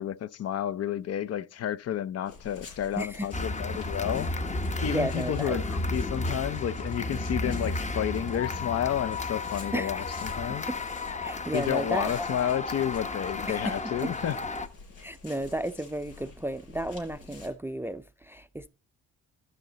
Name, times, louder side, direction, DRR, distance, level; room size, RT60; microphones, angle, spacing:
voice 1, 0.0-4.3 4.8-10.7 11.5-14.4, left 10 dB, 55° left, 0.6 m, -31 dB
sound 1, 2.3-17.5, left 4 dB, 90° left, 5.0 m, -49 dB
voice 2, 3.0-3.3 4.9-5.6 9.7-10.0 10.5-10.8 11.2-12.1 13.5-13.8 15.0-18.7, right 1 dB, 10° right, 0.4 m, -33 dB
sound 2, 3.3-14.7, left 2 dB, 25° left, 0.8 m, -33 dB
12.0 x 5.6 x 3.9 m
cardioid pair, 90°, 30 cm